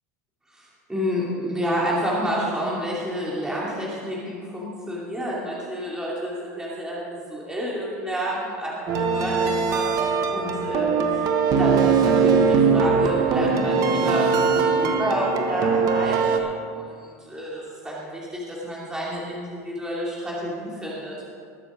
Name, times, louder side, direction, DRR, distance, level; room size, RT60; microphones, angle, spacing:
voice 1, 0.5-11.3 11.6-21.2, equal, 10° right, -6 dB, 2.9 m, -29 dB
sound 1, 8.9-16.4, right 5 dB, 50° right, 1.3 m, -21 dB
20.5 x 7.0 x 5.0 m, 2.3 s
supercardioid pair, 105°, 8 cm